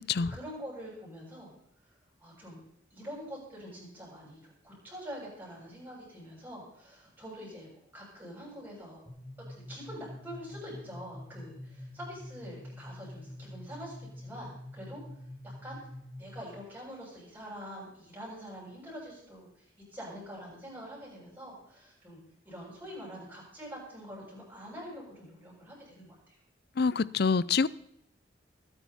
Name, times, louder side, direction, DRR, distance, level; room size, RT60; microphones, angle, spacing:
voice 1, 0.3-1.5 2.2-2.6 2.9-9.0 9.5-15.0 15.4-15.8 16.2-22.2 22.4-26.4, equal, 10° right, 7.7 m, -45 dB
sound 1, 9.1-16.6, left 1 dB, 5° left, 2.5 m, -46 dB
voice 2, 26.8-27.7, left 5 dB, 55° left, 0.5 m, -26 dB
20.0 x 10.0 x 4.3 m
head